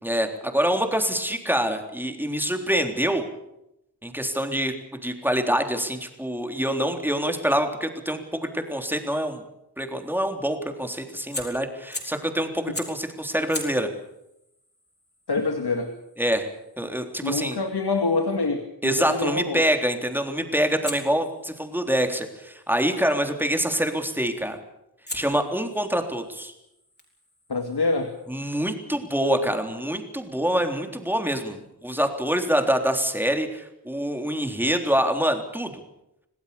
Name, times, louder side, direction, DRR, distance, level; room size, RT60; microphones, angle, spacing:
voice 1, 0.0-3.3 4.0-4.7 5.0-9.4 9.8-13.9 16.2-16.5 16.8-17.6 18.8-24.6 25.1-26.5 28.3-35.8, equal, 5° right, 5 dB, 3.6 m, -25 dB
Fire, 11.3-12.3 12.7-13.1 13.5-18.4 20.8-22.9 24.3-24.6 25.1-28.5, left 1 dB, 25° left, 6.3 m, -42 dB
voice 2, 15.3-15.9 17.2-19.6 27.5-28.1, left 3 dB, 75° left, 6 dB, 2.3 m, -26 dB
28.0 x 18.5 x 7.0 m, 0.84 s
wide cardioid pair, 85°, 39 cm